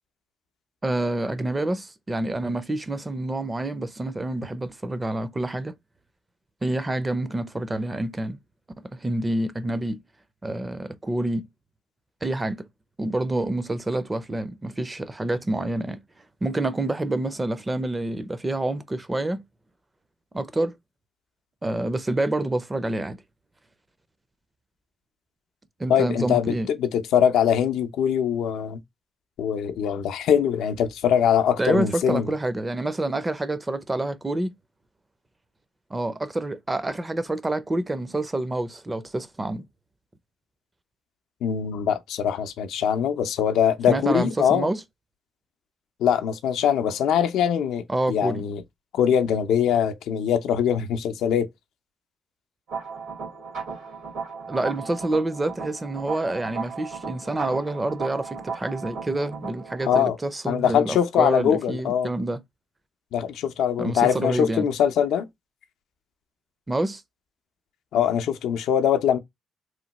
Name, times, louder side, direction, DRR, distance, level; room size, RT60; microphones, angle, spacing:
voice 1, 0.8-5.7 6.6-8.4 8.9-10.0 10.4-11.5 12.2-12.7 13.0-16.0 16.4-19.4 20.3-20.7 21.6-23.2 25.8-26.7 31.6-34.5 35.9-39.7 43.9-44.8 47.9-48.4 54.5-62.4 63.8-64.7 66.7-67.0, right 2 dB, 20° right, 0.4 m, -27 dB
voice 2, 25.9-28.8 29.4-32.3 41.4-44.7 46.0-48.6 48.9-51.5 59.9-60.2 60.5-62.1 63.1-65.3 67.9-69.2, left 8 dB, 80° left, 0.5 m, -22 dB
sound 1, 52.7-60.0, right 5 dB, 80° right, 1.6 m, -36 dB
3.1 x 2.2 x 2.8 m
cardioid pair, 90°, 0 cm